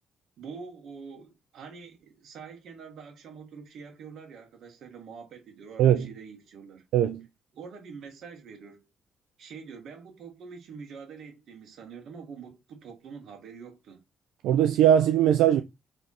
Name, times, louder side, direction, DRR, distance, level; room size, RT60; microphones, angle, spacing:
voice 1, 0.4-6.8 7.5-8.9 9.4-14.0, right 5 dB, 70° right, 1.6 m, -45 dB
voice 2, 5.8-6.1 6.9-7.3 14.4-15.6, right 10 dB, 90° right, 0.4 m, -20 dB
3.6 x 3.4 x 4.1 m
cardioid pair, 90°, 0 cm